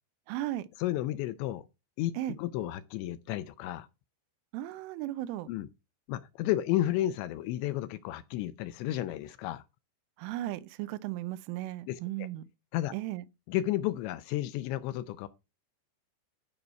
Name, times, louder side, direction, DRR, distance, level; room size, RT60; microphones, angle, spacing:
voice 1, 0.3-0.7 2.1-2.4 4.5-5.5 10.2-12.5 12.9-13.2, right 14 dB, 90° right, 3.2 m, -36 dB
voice 2, 0.8-1.6 2.0-2.1 2.4-3.9 5.5-5.7 6.1-9.6 11.9-12.3 12.7-12.9 13.5-15.3, left 14 dB, 80° left, 2.8 m, -32 dB
12.0 x 5.4 x 4.4 m
omnidirectional pair, 5.5 m